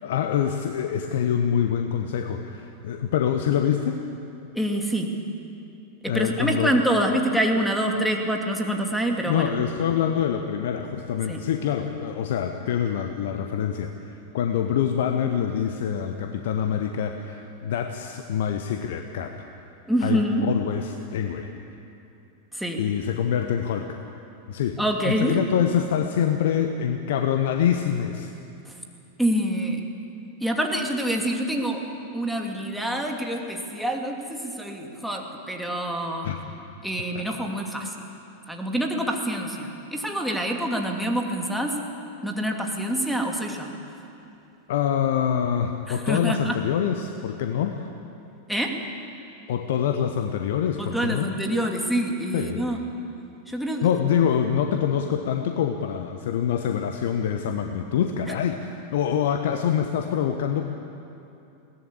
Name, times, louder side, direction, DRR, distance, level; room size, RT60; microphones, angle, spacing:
voice 1, 0.0-4.0 6.1-6.7 9.3-13.9 14.3-19.3 20.0-21.5 22.8-24.0 24.5-24.8 25.0-28.3 36.2-36.4 37.1-37.2 44.7-47.9 49.5-51.3 52.3-52.8 53.8-60.6, left 8 dB, 55° left, 6 dB, 1.1 m, -25 dB
voice 2, 4.5-5.2 6.0-9.5 11.3-11.4 19.9-20.5 22.5-22.8 24.8-25.4 28.7-28.8 29.2-29.8 30.4-36.3 36.8-38.0 38.5-41.8 42.2-43.7 45.9-46.6 48.5-48.8 50.8-52.8 53.5-53.9, right 1 dB, ahead, 1 dB, 2.6 m, -26 dB
21.5 x 17.5 x 8.6 m, 2.7 s
figure-of-eight pair, 90°, 0 cm